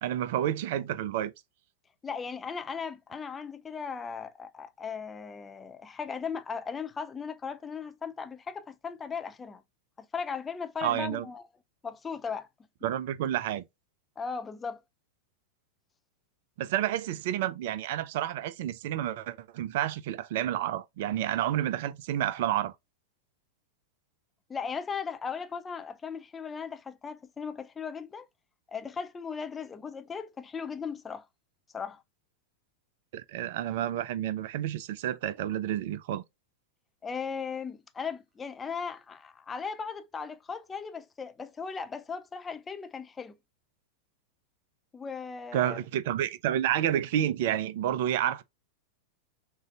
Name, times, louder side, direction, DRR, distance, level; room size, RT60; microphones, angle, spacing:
voice 1, 0.0-1.3 10.8-11.3 12.8-13.6 16.6-22.7 33.1-36.2 45.5-48.4, right 11 dB, 50° right, 0.4 m, -30 dB
voice 2, 2.0-9.6 10.0-11.5 11.8-12.5 14.2-14.8 24.5-28.3 28.7-31.3 31.7-32.0 37.0-43.4 44.9-45.8, left 6 dB, 15° left, 0.5 m, -37 dB
6.3 x 2.7 x 2.4 m
figure-of-eight pair, 90°, 0 cm